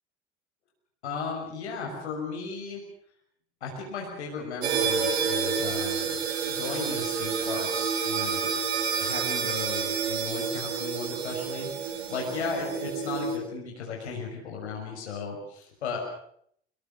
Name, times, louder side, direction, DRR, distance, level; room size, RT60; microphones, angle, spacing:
voice 1, 1.0-2.8 3.6-6.2 6.4-8.5 9.0-16.1, left 4 dB, 75° left, 0 dB, 6.2 m, -35 dB
sound 1, 4.6-13.4, right 6 dB, 70° right, 3.6 m, -29 dB
25.5 x 22.5 x 6.4 m, 0.66 s
figure-of-eight pair, 65°, 34 cm